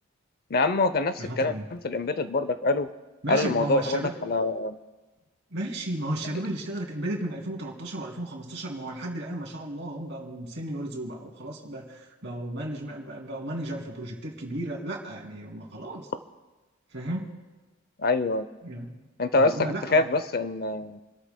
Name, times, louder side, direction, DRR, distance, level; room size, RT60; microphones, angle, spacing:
voice 1, 0.5-2.9 3.3-4.8 18.0-18.5 19.2-21.0, left 2 dB, 45° left, 12 dB, 0.6 m, -25 dB
voice 2, 1.2-1.7 3.2-4.1 5.5-16.1 16.9-17.3 18.6-18.9 19.3-20.1, right 1 dB, 60° right, 0 dB, 2.7 m, -34 dB
29.5 x 13.5 x 2.2 m, 1.2 s
head